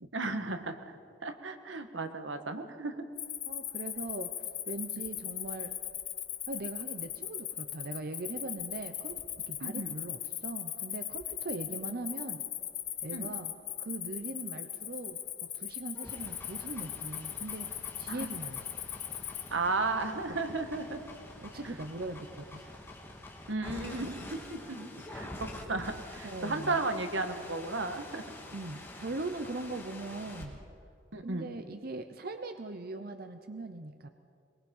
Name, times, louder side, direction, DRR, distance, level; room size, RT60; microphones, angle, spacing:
voice 1, 0.0-3.0 9.6-9.9 13.1-13.3 18.1-18.3 19.5-21.0 21.6-21.7 23.5-28.2 31.1-31.5, right 3 dB, 85° right, 7 dB, 1.6 m, -34 dB
Cricket, 3.2-19.5, left 11 dB, 60° left, 1.7 m, -38 dB
voice 2, 3.5-4.3 4.7-5.7 6.5-9.2 9.5-12.4 13.0-13.5 13.8-17.7 18.0-18.6 21.4-22.8 26.2-26.8 28.5-30.6 31.2-34.1, right 2 dB, 55° right, 7 dB, 0.9 m, -40 dB
sound 1, 16.0-30.5, left 1 dB, 15° left, 2.8 m, -47 dB
22.5 x 22.0 x 5.5 m, 2.3 s
head